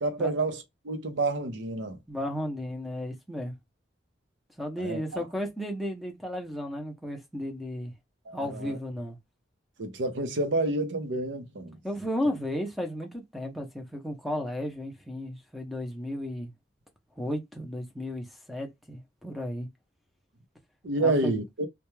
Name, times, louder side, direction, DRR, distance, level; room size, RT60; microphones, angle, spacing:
voice 1, 0.0-2.0 4.8-5.0 8.3-8.8 9.8-11.8 20.8-21.7, right 2 dB, 70° right, 0.6 m, -29 dB
voice 2, 2.1-3.5 4.6-7.9 8.3-9.2 11.8-16.5 17.2-19.7 21.0-21.3, left 1 dB, ahead, 0.6 m, -34 dB
2.3 x 2.2 x 3.0 m
head